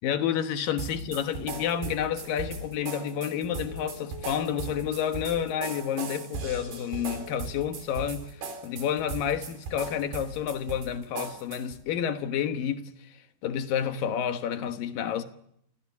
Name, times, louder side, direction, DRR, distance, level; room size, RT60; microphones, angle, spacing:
voice 1, 0.0-15.2, left 9 dB, 65° left, 2.5 m, -30 dB
sound 1, 0.8-11.8, right 4 dB, 65° right, 5.4 m, -38 dB
sound 2, 1.5-12.5, left 7 dB, 85° left, 5.8 m, -48 dB
29.0 x 26.5 x 7.2 m
omnidirectional pair, 5.2 m